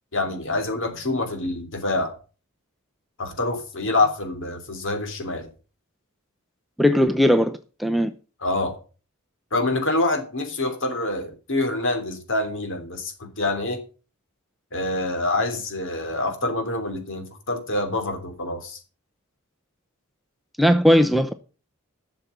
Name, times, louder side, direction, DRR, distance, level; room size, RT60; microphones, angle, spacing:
voice 1, 0.1-2.1 3.2-5.5 8.4-8.7 9.5-13.8 14.7-18.8, left 2 dB, 60° left, 3.2 m, -26 dB
voice 2, 6.8-8.1 20.6-21.3, equal, ahead, 0.6 m, -18 dB
12.0 x 6.9 x 7.2 m
head